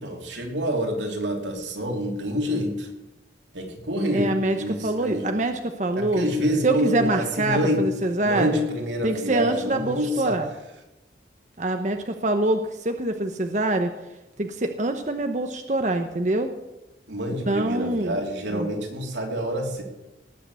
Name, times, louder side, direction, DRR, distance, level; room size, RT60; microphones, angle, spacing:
voice 1, 0.0-2.9 3.5-5.3 5.9-7.8 8.2-10.4 17.1-19.8, equal, 90° right, 2 dB, 3.1 m, -27 dB
voice 2, 4.1-6.2 6.6-8.7 9.0-10.5 11.6-13.9 14.4-16.5 17.5-18.2 18.5-18.7, right 2 dB, 40° right, 6 dB, 0.9 m, -25 dB
18.5 x 6.6 x 8.2 m, 0.97 s
head